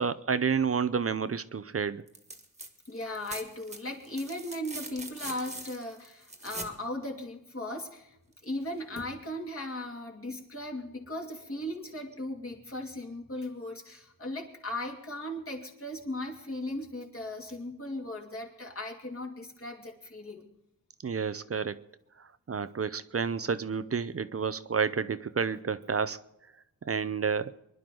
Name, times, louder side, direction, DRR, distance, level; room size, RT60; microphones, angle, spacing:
voice 1, 0.0-2.0 21.0-21.8 22.2-26.2 26.9-27.6, right 6 dB, 40° right, 0.6 m, -30 dB
sound 1, 2.1-2.7 3.0-6.8 8.4-8.5, right 2 dB, 20° right, 1.7 m, -42 dB
voice 2, 2.9-8.2 8.4-20.4, left 1 dB, 35° left, 2.7 m, -37 dB
24.5 x 11.0 x 3.9 m
wide cardioid pair, 115°, 36 cm